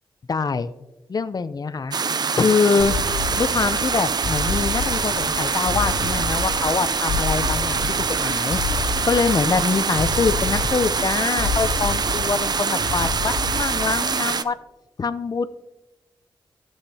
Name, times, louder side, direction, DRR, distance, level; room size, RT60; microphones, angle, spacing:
voice 1, 0.3-0.7 1.1-2.0 2.3-3.0 3.4-7.8 8.1-8.6 9.1-14.5 15.0-15.5, left 5 dB, 45° left, 13 dB, 0.6 m, -24 dB
sound 1, 1.9-14.4, right 5 dB, 50° right, 0.5 m, -24 dB
sound 2, 2.8-14.2, left 4 dB, 80° left, 0.9 m, -29 dB
13.0 x 8.1 x 2.8 m, 1.0 s
cardioid pair, 60°, 9 cm